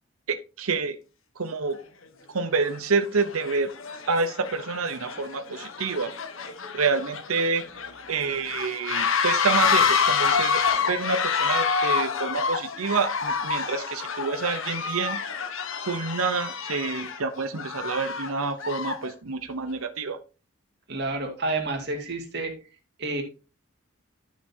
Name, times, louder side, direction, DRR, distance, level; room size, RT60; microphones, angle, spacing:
voice 1, 0.3-1.0 1.4-1.8 2.3-3.7 4.1-6.1 6.7-7.7 8.1-10.6 10.9-15.2 15.9-20.2, right 4 dB, 85° right, 0.8 m, -28 dB
sound 1, 1.7-1.8 2.6-2.8 3.1-19.1, left 6 dB, 70° left, 1.1 m, -28 dB
voice 2, 20.9-22.5 23.0-23.2, right 2 dB, 50° right, 2.2 m, -29 dB
11.5 x 6.2 x 2.8 m
head